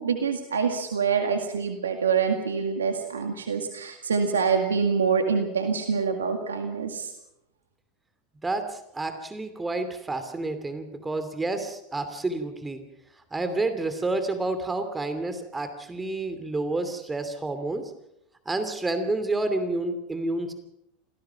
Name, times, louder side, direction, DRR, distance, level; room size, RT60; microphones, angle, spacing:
voice 1, 0.0-7.1, right 6 dB, 85° right, 6 dB, 2.0 m, -26 dB
voice 2, 8.4-12.8 13.3-17.9 18.5-20.5, right 2 dB, 15° right, 9 dB, 2.8 m, -29 dB
26.5 x 17.0 x 6.0 m, 0.82 s
hypercardioid pair, 85°, 0 cm